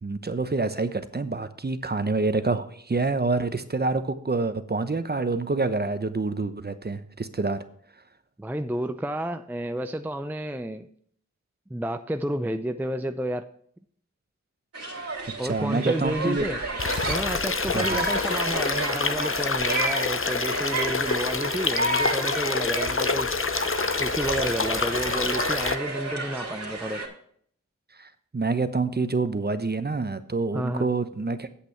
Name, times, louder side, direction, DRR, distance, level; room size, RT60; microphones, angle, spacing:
voice 1, 0.0-7.6 14.9-16.4 17.7-18.0 28.0-31.6, right 3 dB, 30° right, 0.8 m, -27 dB
voice 2, 8.4-10.9 11.7-13.5 15.4-16.6 17.1-23.3 24.0-27.0 30.5-30.9, right 1 dB, 5° right, 0.5 m, -31 dB
sound 1, 14.7-27.1, right 2 dB, 55° right, 2.5 m, -32 dB
sound 2, 16.8-25.8, left 4 dB, 45° left, 0.8 m, -27 dB
8.4 x 8.2 x 4.5 m
wide cardioid pair, 55°, 31 cm